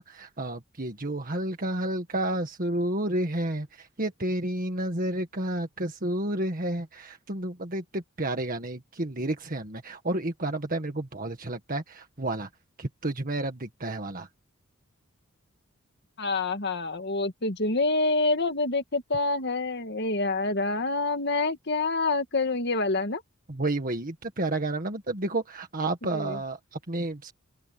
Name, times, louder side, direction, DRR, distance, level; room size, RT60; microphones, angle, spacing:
voice 1, 0.0-12.5 12.8-14.3 23.5-27.3, right 1 dB, 40° right, 1.8 m, -31 dB
voice 2, 16.2-23.2 26.1-26.4, left 3 dB, 55° left, 1.9 m, -27 dB
open air
head